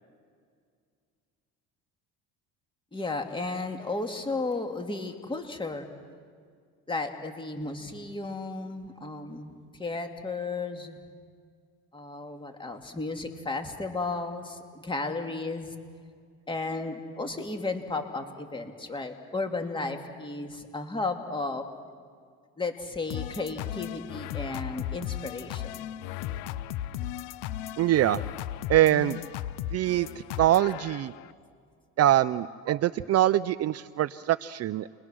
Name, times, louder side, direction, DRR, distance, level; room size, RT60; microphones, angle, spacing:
voice 1, 2.9-5.9 6.9-9.5 9.8-11.0 11.9-15.7 16.5-21.6 22.6-25.9, left 3 dB, 15° left, 4 dB, 2.3 m, -34 dB
sound 1, 23.1-31.3, left 12 dB, 90° left, 0.7 m, -36 dB
voice 2, 27.8-28.2 28.7-29.2 29.7-30.1 30.4-31.1 32.0-34.9, right 13 dB, 50° right, 14 dB, 0.5 m, -23 dB
29.5 x 22.0 x 6.2 m, 2.1 s
cardioid pair, 105°, 33 cm